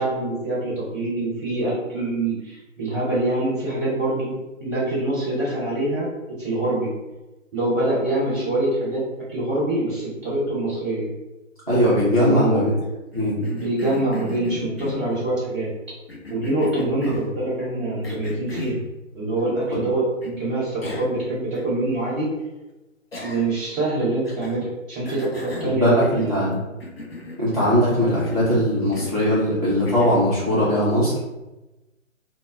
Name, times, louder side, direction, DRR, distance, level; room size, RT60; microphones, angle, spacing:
voice 1, 0.0-4.3 4.6-6.9 7.5-9.0 9.3-11.1 12.2-12.6 13.3-15.7 16.3-18.8 19.1-22.3 23.2-26.4, right 2 dB, ahead, -26 dB, 0.8 m, -25 dB
voice 2, 11.7-12.7 13.1-13.4 19.7-19.8 25.7-26.6 27.4-31.1, equal, 30° right, -9 dB, 0.4 m, -20 dB
Cough, 13.1-15.3 16.1-17.4 18.0-18.8 20.2-20.3 20.8-21.2 21.5-21.6 23.1-23.7 24.2-24.6 25.0-26.5 26.8-27.9 28.2-28.5 28.9-29.2 29.8-30.3, left 2 dB, 50° left, 0.5 m, -36 dB
2.0 x 2.0 x 3.4 m, 1.1 s
figure-of-eight pair, 150°, 40 cm